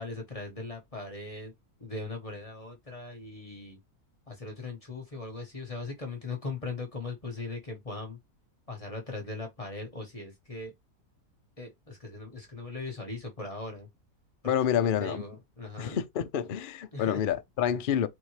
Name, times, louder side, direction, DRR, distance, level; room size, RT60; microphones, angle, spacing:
voice 1, 0.0-1.5 1.8-3.8 4.3-8.2 8.7-10.7 11.6-13.9 14.4-16.0 16.9-17.2, left 3 dB, 25° left, 1.0 m, -39 dB
voice 2, 14.5-15.2 15.8-18.1, left 9 dB, 65° left, 0.5 m, -28 dB
4.2 x 3.5 x 3.2 m
omnidirectional pair, 1.6 m